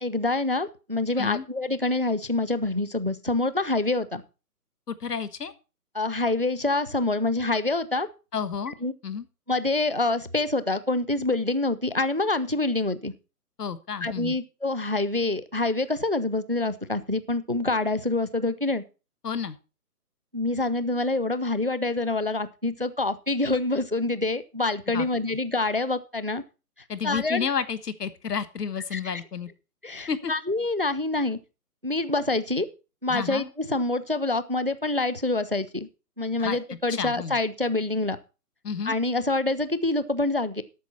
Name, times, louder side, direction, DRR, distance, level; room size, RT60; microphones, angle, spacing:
voice 1, 0.0-4.2 5.9-8.1 8.8-8.9 9.5-13.1 14.0-18.8 20.3-26.4 27.0-27.5 28.9-29.2 29.8-31.4 31.8-32.7 33.0-35.9 36.2-38.2 38.9-40.6, left 2 dB, 40° right, 15 dB, 0.4 m, -26 dB
voice 2, 4.9-5.5 8.3-8.8 9.0-9.3 13.6-14.4 19.2-19.6 24.9-25.4 26.9-29.5 30.1-30.3 33.1-33.5 36.4-36.6 36.9-37.4 38.6-38.9, left 6 dB, 75° left, 14 dB, 1.4 m, -31 dB
12.0 x 8.3 x 4.2 m, 0.31 s
hypercardioid pair, 180°, 47 cm